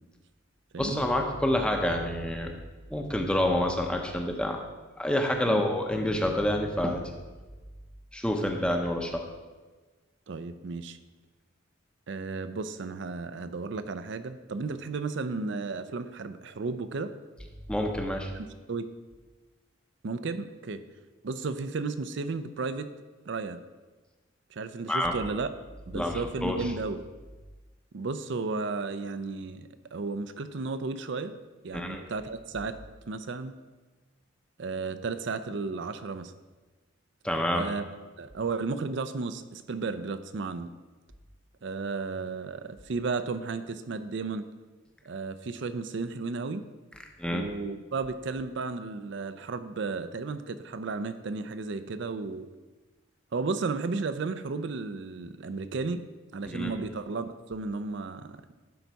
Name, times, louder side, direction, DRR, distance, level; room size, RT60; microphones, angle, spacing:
voice 1, 0.8-2.5 2.9-4.6 5.0-7.0 8.1-9.2 17.7-18.3 24.9-25.1 25.9-26.7 31.7-32.0 37.2-37.7 47.2-47.4 56.5-56.7, left 1 dB, 5° left, 3 dB, 0.7 m, -28 dB
voice 2, 10.3-11.0 12.1-17.1 18.3-18.8 20.0-20.8 21.2-22.9 23.3-23.6 24.5-25.5 25.9-27.0 27.9-31.4 31.6-32.8 33.1-33.5 34.6-36.3 37.5-37.8 38.2-40.7 41.6-44.5 45.1-46.7 47.3-52.5 53.3-56.0 56.3-58.4, right 4 dB, 60° right, 11 dB, 0.5 m, -33 dB
11.5 x 4.0 x 4.7 m, 1.3 s
head